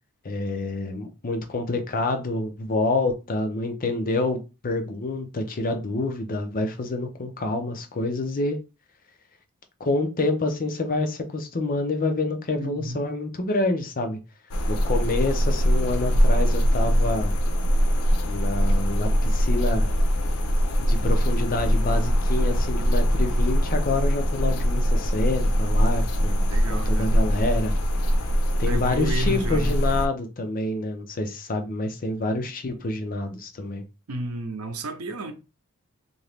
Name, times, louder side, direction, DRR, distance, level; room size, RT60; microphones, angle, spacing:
voice 1, 0.2-8.6 9.8-14.2 14.7-17.3 18.3-19.9 20.8-27.7 28.6-33.8, left 2 dB, 40° left, 0.6 m, -27 dB
voice 2, 12.6-13.0 26.5-27.1 28.7-29.8 34.1-35.3, right 1 dB, 85° right, 0.7 m, -31 dB
sound 1, 14.5-30.1, equal, 85° left, 0.5 m, -22 dB
2.9 x 2.6 x 3.3 m
head